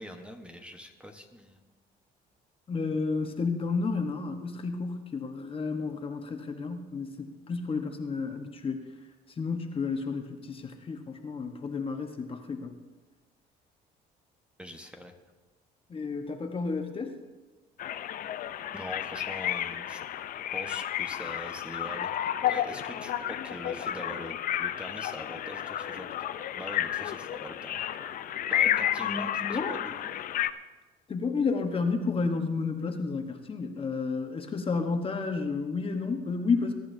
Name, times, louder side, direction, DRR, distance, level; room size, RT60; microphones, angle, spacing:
voice 1, 0.0-1.6 14.6-15.1 18.7-20.0 20.5-26.2 26.5-30.2, equal, 5° right, 5 dB, 1.1 m, -43 dB
voice 2, 2.7-8.9 9.4-12.7 15.9-17.2 28.7-29.7 31.1-36.8, left 4 dB, 35° left, 5 dB, 1.1 m, -31 dB
sound 1, 17.8-30.5, left 11 dB, 55° left, 0.6 m, -32 dB
21.5 x 11.0 x 2.7 m, 1.3 s
cardioid pair, 110°, 17 cm